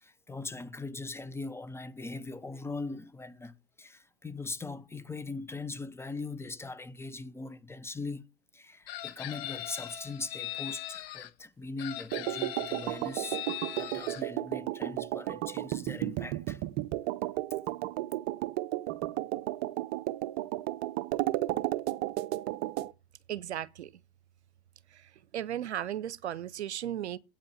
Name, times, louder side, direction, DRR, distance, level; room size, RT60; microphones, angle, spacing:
voice 1, 0.0-13.4 13.8-16.6, left 3 dB, 10° left, 0.5 m, -40 dB
Chicken rooster, 8.9-11.3 11.8-14.2, left 13 dB, 60° left, 1.2 m, -40 dB
sound 1, 12.1-22.9, right 16 dB, 45° right, 0.7 m, -33 dB
voice 2, 23.3-23.9 24.9-27.2, right 11 dB, 85° right, 0.7 m, -36 dB
8.5 x 5.2 x 7.3 m
hypercardioid pair, 100°, 33 cm